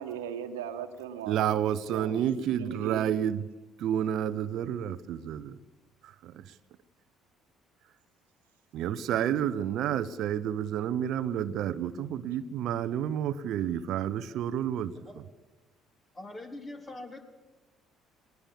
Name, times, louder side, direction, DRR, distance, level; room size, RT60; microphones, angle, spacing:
voice 1, 0.0-3.1, right 9 dB, 75° right, 1.4 m, -38 dB
voice 2, 1.3-3.4 3.8-5.6 6.0-6.5 8.7-15.0, right 10 dB, 55° right, 0.8 m, -30 dB
voice 3, 16.1-17.2, left 2 dB, 25° left, 3.4 m, -42 dB
20.0 x 19.5 x 7.3 m
figure-of-eight pair, 50°, 0 cm